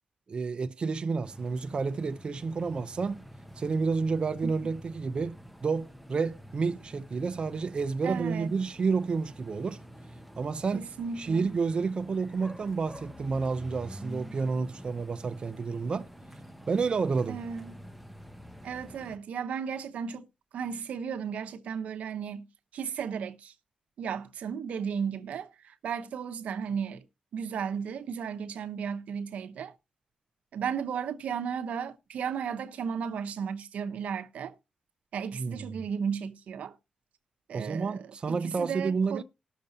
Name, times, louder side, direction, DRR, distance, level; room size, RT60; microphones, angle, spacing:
voice 1, 0.3-3.2 3.6-5.4 5.6-9.8 10.4-10.9 11.2-16.1 16.7-17.4 35.3-35.8 37.5-39.2, right 4 dB, 45° right, 0.6 m, -30 dB
sound 1, 1.2-19.2, equal, ahead, 0.9 m, -48 dB
voice 2, 8.0-8.5 10.7-11.5 17.3-17.7 18.6-20.3 20.5-22.5 22.7-23.5 24.0-27.0 27.3-29.8 30.5-34.6 35.1-36.8 37.5-39.2, right 7 dB, 80° right, 0.8 m, -34 dB
19.5 x 6.5 x 2.8 m
cardioid pair, 85°, 2 cm